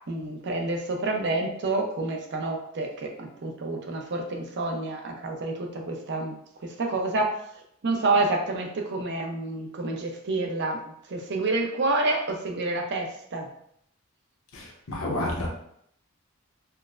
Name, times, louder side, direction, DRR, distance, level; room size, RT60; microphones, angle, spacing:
voice 1, 0.1-6.4 6.6-7.3 7.8-10.8 11.1-13.5, right 2 dB, 55° right, 2 dB, 0.6 m, -28 dB
voice 2, 14.5-15.5, left 1 dB, 70° left, -2 dB, 0.8 m, -30 dB
4.5 x 2.1 x 2.4 m, 0.71 s
head